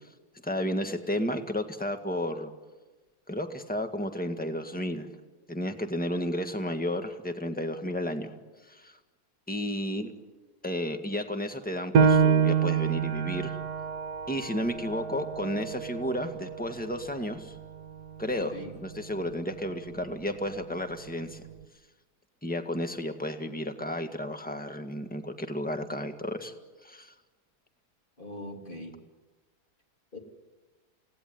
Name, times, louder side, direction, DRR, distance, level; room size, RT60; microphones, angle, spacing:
voice 1, 0.4-2.5 3.3-5.1 5.5-8.3 8.7-8.9 9.5-10.1 10.6-13.6 14.3-17.5 18.2-21.4 22.4-26.5 26.8-27.1, left 1 dB, 5° left, 6 dB, 1.7 m, -32 dB
Piano, 11.9-17.1 17.6-17.7 18.3-18.8, right 6 dB, 70° right, 1.6 m, -27 dB
voice 2, 28.2-29.0 30.1-30.2, left 1 dB, 30° left, 2 dB, 3.3 m, -41 dB
29.0 x 18.0 x 9.4 m, 1.2 s
omnidirectional pair, 1.8 m